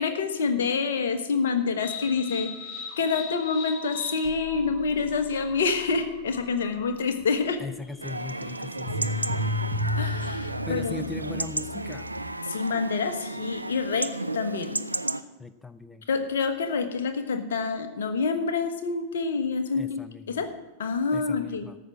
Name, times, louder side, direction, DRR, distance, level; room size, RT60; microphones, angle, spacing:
voice 1, 0.0-7.6 10.0-11.0 12.4-14.8 16.1-20.0 20.3-21.7, left 5 dB, 65° left, 9 dB, 1.3 m, -27 dB
sound 1, 1.8-12.4, left 2 dB, 35° left, 5.0 m, -35 dB
voice 2, 7.6-9.4 10.7-12.1 15.4-16.1 19.7-20.4 21.1-21.8, left 3 dB, 10° left, 13 dB, 0.4 m, -39 dB
Chatter / Livestock farm animals working animals / Chirp tweet, 8.0-15.2, right 2 dB, 85° right, 0.4 m, -33 dB
13.5 x 6.0 x 7.4 m, 1.2 s
figure-of-eight pair, 90°, 0 cm